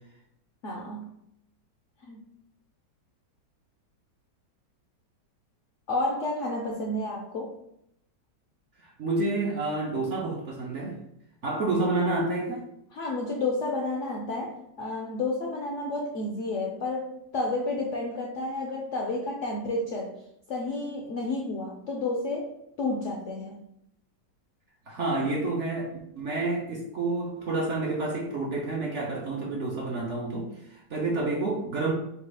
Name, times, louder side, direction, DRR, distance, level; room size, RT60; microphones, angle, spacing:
voice 1, 0.6-1.1 2.1-2.2 5.9-7.6 12.9-20.1 20.5-23.6, left 2 dB, 70° left, 0 dB, 0.7 m, -31 dB
voice 2, 8.8-11.0 11.4-12.7 24.9-31.9, right 2 dB, 60° right, -2 dB, 0.7 m, -29 dB
4.0 x 2.3 x 4.6 m, 0.78 s
omnidirectional pair, 1.9 m